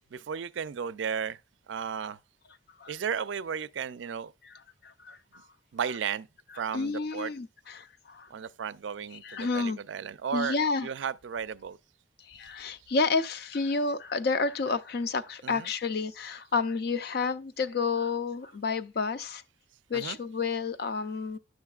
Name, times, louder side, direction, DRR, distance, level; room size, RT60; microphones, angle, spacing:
voice 1, 0.1-1.4 1.7-2.2 2.9-4.3 5.7-6.3 6.6-7.3 8.3-10.6 10.8-11.8 15.4-15.7 19.9-20.2, right 7 dB, 75° right, 0.4 m, -34 dB
voice 2, 4.8-5.5 6.7-8.3 9.1-9.8 10.3-10.9 12.2-19.4 19.9-21.4, left 4 dB, 55° left, 0.4 m, -30 dB
10.5 x 6.3 x 2.3 m
head